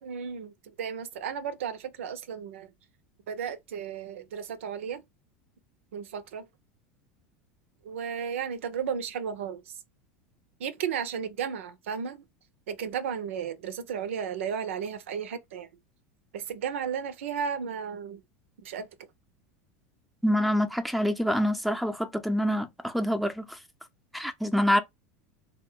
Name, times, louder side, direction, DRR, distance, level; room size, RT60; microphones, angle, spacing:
voice 1, 0.0-2.7 3.3-5.0 5.9-6.5 7.8-9.7 10.6-12.2 12.7-15.7 16.3-18.2 18.6-18.9, right 7 dB, 85° right, 0.6 m, -34 dB
voice 2, 20.2-23.6 24.1-24.8, equal, ahead, 0.6 m, -26 dB
3.7 x 2.2 x 3.6 m
supercardioid pair, 110°, 7 cm